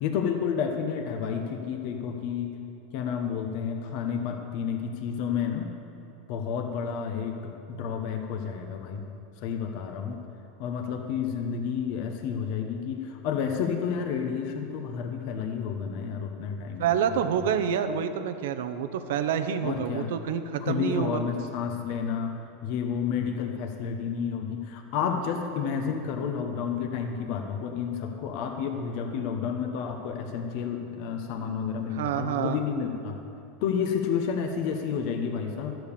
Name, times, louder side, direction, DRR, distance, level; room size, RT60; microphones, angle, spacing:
voice 1, 0.0-2.5 2.9-5.7 6.3-9.0 9.4-10.2 10.6-16.8 17.1-17.2 19.6-20.1 20.6-22.4 22.6-33.2 33.6-35.8, left 7 dB, 55° left, 4 dB, 1.1 m, -30 dB
voice 2, 16.8-21.2 31.9-32.6, right 8 dB, 80° right, 9 dB, 0.8 m, -28 dB
13.0 x 7.9 x 6.9 m, 2.8 s
supercardioid pair, 150°, 0 cm